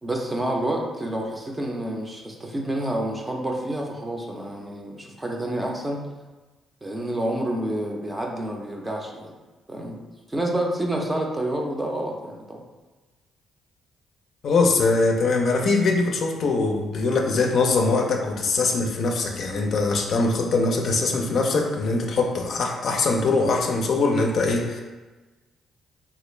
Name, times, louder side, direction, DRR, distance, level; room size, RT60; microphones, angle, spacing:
voice 1, 0.0-6.0 6.8-9.3 9.7-10.0 10.3-12.6, right 1 dB, 15° right, 0 dB, 0.6 m, -28 dB
voice 2, 14.4-24.8, left 3 dB, 60° left, 1 dB, 0.5 m, -22 dB
3.0 x 2.4 x 3.1 m, 1.2 s
cardioid pair, 90°, 0 cm